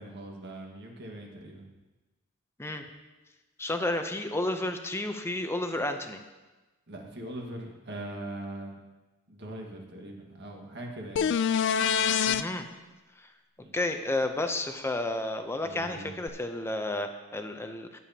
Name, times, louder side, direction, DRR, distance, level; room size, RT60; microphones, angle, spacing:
voice 1, 0.0-1.6 6.9-8.8 9.3-11.3 13.6-13.7 15.6-16.1, right 1 dB, 60° right, 0 dB, 1.6 m, -41 dB
voice 2, 3.6-6.2 12.3-12.7 13.2-13.3 13.7-18.0, left 2 dB, 10° left, 6 dB, 0.6 m, -31 dB
sound 1, 11.2-12.4 16.3-16.4, left 7 dB, 60° left, 0.3 m, -25 dB
16.0 x 6.9 x 2.9 m, 1.2 s
head